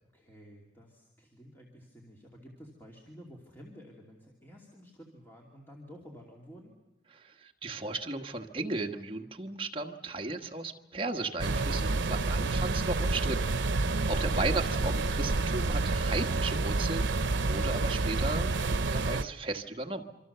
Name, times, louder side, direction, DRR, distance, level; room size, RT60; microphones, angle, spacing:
voice 1, 0.1-6.7, equal, 10° left, -2 dB, 2.7 m, -52 dB
voice 2, 7.1-13.5 14.1-20.0, right 2 dB, 30° right, 3 dB, 1.5 m, -35 dB
sound 1, 11.4-19.2, right 3 dB, 85° right, 0.8 m, -29 dB
26.5 x 25.5 x 6.9 m, 1.0 s
head